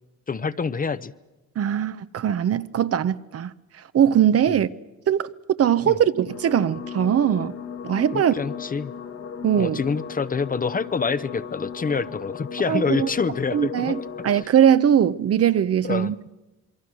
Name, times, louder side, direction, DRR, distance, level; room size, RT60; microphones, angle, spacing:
voice 1, 0.3-1.1 5.8-6.0 8.1-8.9 9.6-14.0 15.8-16.1, left 5 dB, 30° left, 0.8 m, -26 dB
voice 2, 1.6-3.5 3.9-4.7 5.1-5.3 5.6-7.5 7.8-8.3 9.4-9.8 12.7-13.1 13.5-16.2, right 9 dB, 50° right, 0.8 m, -20 dB
sound 1, 6.3-14.4, left 7 dB, 55° left, 1.7 m, -36 dB
26.5 x 22.5 x 6.3 m
cardioid pair, 90°, 30 cm